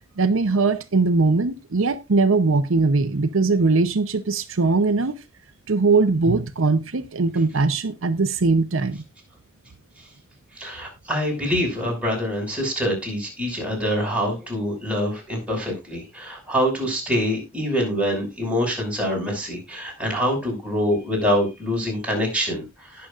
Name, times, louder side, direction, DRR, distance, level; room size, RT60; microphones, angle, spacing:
voice 1, 0.2-5.2 5.7-9.0, right 3 dB, 65° right, 0.7 m, -20 dB
voice 2, 10.6-23.1, equal, 5° right, 5.9 m, -25 dB
19.0 x 6.8 x 2.5 m
head